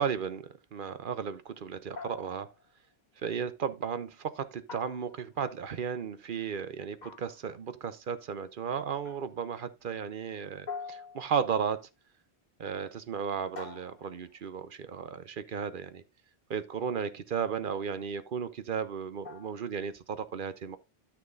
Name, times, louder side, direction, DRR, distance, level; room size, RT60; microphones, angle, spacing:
voice 1, 0.0-2.5 3.2-11.9 12.6-16.0 16.5-20.8, right 7 dB, 60° right, 0.8 m, -34 dB
sound 1, 2.0-2.7 4.7-5.5 7.0-7.6 9.0-9.5 10.7-11.6 13.6-14.4 17.3-17.7 19.2-19.7, left 5 dB, 45° left, 1.2 m, -45 dB
13.0 x 6.1 x 2.5 m
omnidirectional pair, 1.0 m